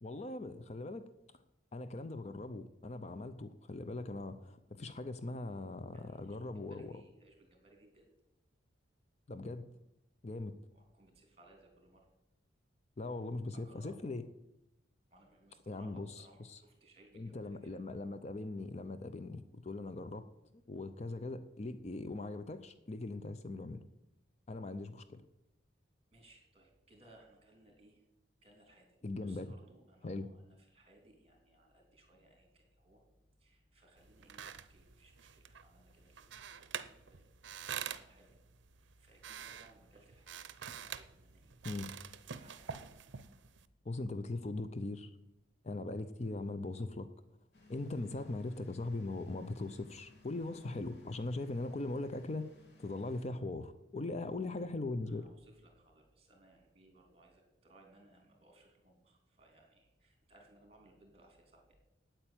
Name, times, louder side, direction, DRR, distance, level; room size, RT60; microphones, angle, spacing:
voice 1, 0.0-1.1 1.3-1.4 1.7-6.9 9.3-9.7 10.2-10.6 13.0-14.2 15.7-16.6 17.1-20.3 20.7-23.8 24.5-25.2 29.0-29.5 30.0-30.3 41.6-41.9 43.8-45.2 45.6-47.1 47.7-52.5 52.8-55.3, left 2 dB, 35° left, 11 dB, 0.5 m, -40 dB
voice 2, 5.9-6.4 6.7-8.1 10.7-12.1 13.5-14.1 15.1-17.8 26.1-28.1 28.4-33.0 33.4-37.3 37.7-38.4 38.8-40.4 40.7-41.6 42.2-42.9 54.1-54.6 55.1-61.7, right 2 dB, 30° right, 2 dB, 3.2 m, -64 dB
sound 1, 34.0-43.7, right 8 dB, 65° right, 0.6 m, -47 dB
sound 2, 47.5-53.3, left 3 dB, 60° left, 2.6 m, -62 dB
9.1 x 8.9 x 8.9 m, 0.90 s
head